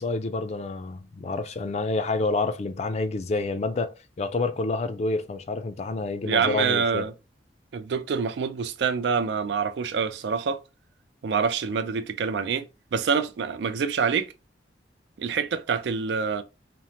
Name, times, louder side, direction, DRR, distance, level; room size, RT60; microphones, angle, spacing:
voice 1, 0.0-7.0, left 3 dB, 40° left, 0.3 m, -28 dB
voice 2, 6.2-7.1 7.7-10.6 11.2-12.7 12.9-14.3 15.2-16.4, right 6 dB, 75° right, 0.3 m, -26 dB
3.0 x 2.0 x 2.7 m
head